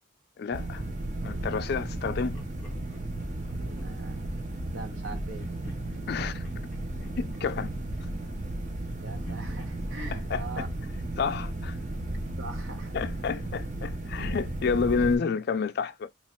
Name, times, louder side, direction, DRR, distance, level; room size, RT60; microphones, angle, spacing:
voice 1, 0.4-0.8 1.2-2.4 6.1-6.5 7.2-7.7 10.1-10.7 11.2-11.8 12.9-16.1, left 5 dB, 55° left, 0.3 m, -30 dB
sound 1, 0.5-15.2, right 1 dB, 40° right, 0.7 m, -34 dB
Laughter, 2.0-4.2 5.4-8.9 9.2-12.0, equal, ahead, 1.2 m, -50 dB
voice 2, 3.6-4.2 4.7-5.5 9.0-10.7 12.4-13.0, right 3 dB, 85° right, 1.0 m, -42 dB
3.1 x 2.4 x 4.3 m
head